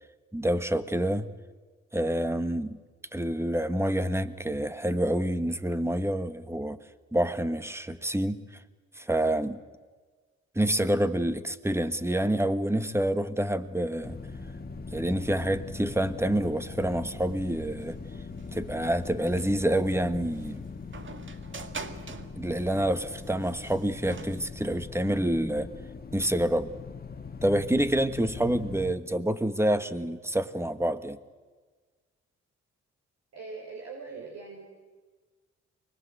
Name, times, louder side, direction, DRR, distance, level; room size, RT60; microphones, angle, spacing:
voice 1, 0.3-1.3 1.9-2.8 3.1-6.8 7.1-8.4 9.0-9.6 10.5-14.2 14.9-18.0 18.5-20.6 22.4-25.7 26.1-26.7 27.4-31.2, right 1 dB, 10° right, 1.5 m, -27 dB
sound 1, 13.6-24.5, right 4 dB, 40° right, 1.9 m, -47 dB
sound 2, 14.0-28.9, left 4 dB, 30° left, 1.7 m, -41 dB
voice 2, 33.3-34.6, right 4 dB, 60° right, 5.4 m, -41 dB
24.5 x 21.0 x 8.0 m
supercardioid pair, 65°, 29 cm